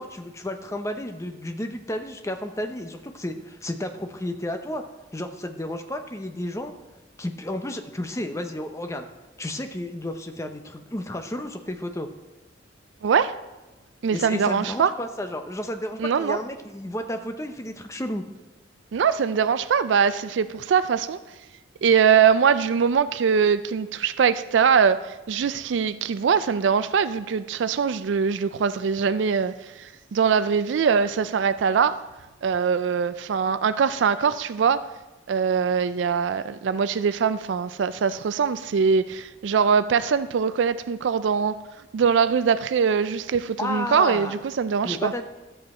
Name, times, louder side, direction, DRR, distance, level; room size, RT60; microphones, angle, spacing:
voice 1, 0.0-4.8 5.1-6.7 7.2-9.1 9.4-12.1 14.1-18.2 43.6-44.3 44.8-45.2, left 1 dB, 15° left, 6 dB, 0.7 m, -32 dB
voice 2, 13.0-13.3 14.0-14.9 16.0-16.4 18.9-21.2 21.8-32.0 32.4-34.9 35.3-41.6 41.9-45.1, right 6 dB, 80° right, 13 dB, 0.4 m, -22 dB
13.0 x 7.9 x 4.3 m, 1.1 s
head